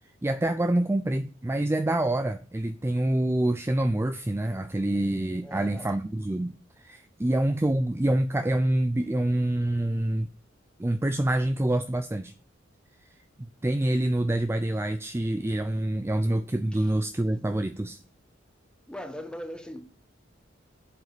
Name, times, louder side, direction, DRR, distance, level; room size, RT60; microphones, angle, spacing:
voice 1, 0.2-10.3 10.8-12.3 13.4-18.0, right 1 dB, 15° right, 0.4 m, -26 dB
voice 2, 5.4-5.9 16.7-16.9 18.9-19.8, equal, 5° left, 1.2 m, -40 dB
8.0 x 7.4 x 5.0 m
head